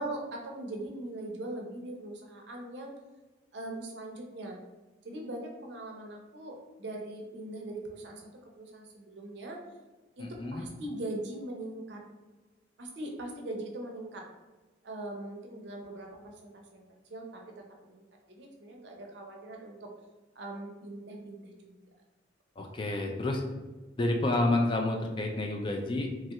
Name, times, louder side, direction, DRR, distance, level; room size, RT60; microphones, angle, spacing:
voice 1, 0.0-2.9 3.5-4.6 5.0-9.6 10.2-12.0 12.8-14.2 14.8-16.8 17.1-17.4 17.8-19.9 20.4-21.7, right 1 dB, 60° right, 1 dB, 0.5 m, -41 dB
voice 2, 10.2-10.6 22.6-23.4 24.0-26.1, left 2 dB, 25° left, 2 dB, 0.3 m, -29 dB
3.1 x 2.3 x 2.8 m, 1.2 s
head